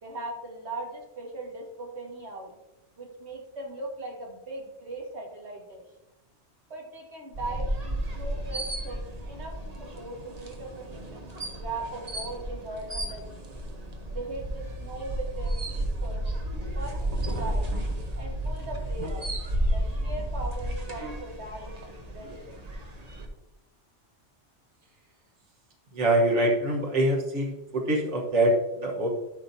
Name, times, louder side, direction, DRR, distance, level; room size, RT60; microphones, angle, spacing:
voice 1, 0.0-2.5 3.0-5.8 6.7-9.0 9.3-13.4 14.1-16.2 16.8-17.7 18.1-19.3 19.7-22.6, right 2 dB, 70° right, -1 dB, 1.9 m, -39 dB
sound 1, 7.3-23.3, right 1 dB, 35° right, 1.1 m, -32 dB
voice 2, 25.9-29.1, right 1 dB, 85° right, -1 dB, 1.6 m, -24 dB
12.0 x 5.5 x 2.7 m, 0.96 s
omnidirectional pair, 1.2 m